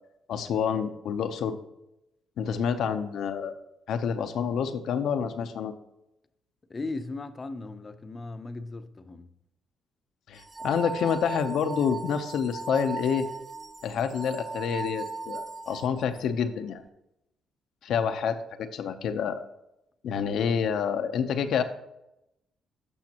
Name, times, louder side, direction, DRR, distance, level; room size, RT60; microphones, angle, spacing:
voice 1, 0.3-1.6 2.4-3.5 3.9-5.7 10.3-13.3 13.8-16.8 17.8-19.5 20.0-21.6, left 7 dB, 75° left, 0.7 m, -28 dB
voice 2, 6.7-9.3, left 3 dB, 30° left, 0.7 m, -37 dB
sound 1, 10.4-16.2, right 3 dB, 30° right, 0.4 m, -38 dB
12.0 x 6.3 x 2.9 m
cardioid pair, 90°, 0 cm